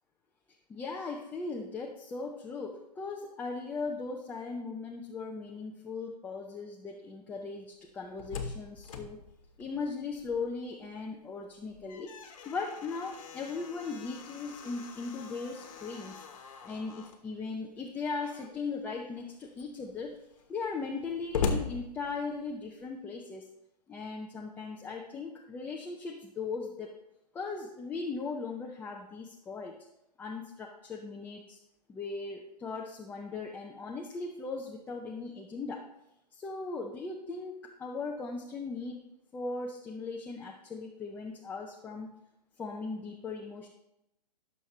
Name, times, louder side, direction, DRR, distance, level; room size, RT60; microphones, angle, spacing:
voice 1, 0.7-9.2 9.6-12.1 12.4-16.3 16.6-20.1 20.5-23.5 23.9-26.9 27.3-29.8 30.2-31.6 31.9-35.9 36.3-39.0 39.3-42.1 42.6-43.7, left 4 dB, 10° left, 0 dB, 0.5 m, -38 dB
Slam, 7.9-10.7 11.0-11.1 11.6-17.2 18.1-18.7 19.2-19.3 19.5-22.6, left 5 dB, 50° left, 1.2 m, -40 dB
15.0 x 6.6 x 3.1 m, 0.86 s
hypercardioid pair, 135°, 21 cm